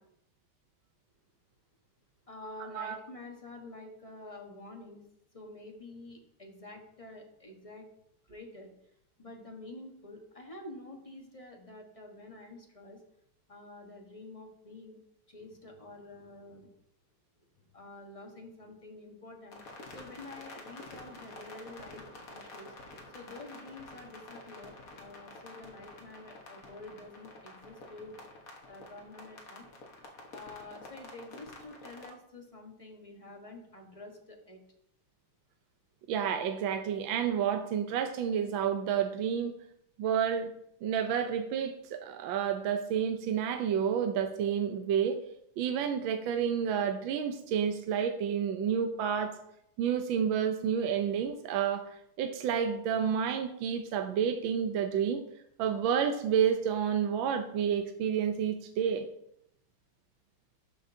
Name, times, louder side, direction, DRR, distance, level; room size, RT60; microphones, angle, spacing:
voice 1, 2.3-5.0 5.3-7.9 8.3-8.7 9.2-13.0 13.5-15.0 15.3-16.7 17.7-22.0 22.3-22.7 23.1-28.2 28.7-29.6 30.3-34.6, left 2 dB, 20° left, 1 dB, 0.9 m, -48 dB
sound 1, 19.5-32.1, left 2 dB, 45° left, 1.5 m, -49 dB
voice 2, 36.1-39.5 40.0-40.5 40.8-45.2 45.6-49.4 49.8-55.2 55.6-59.0, right 8 dB, 75° right, 6 dB, 1.4 m, -30 dB
12.5 x 6.2 x 2.7 m, 0.74 s
omnidirectional pair, 2.4 m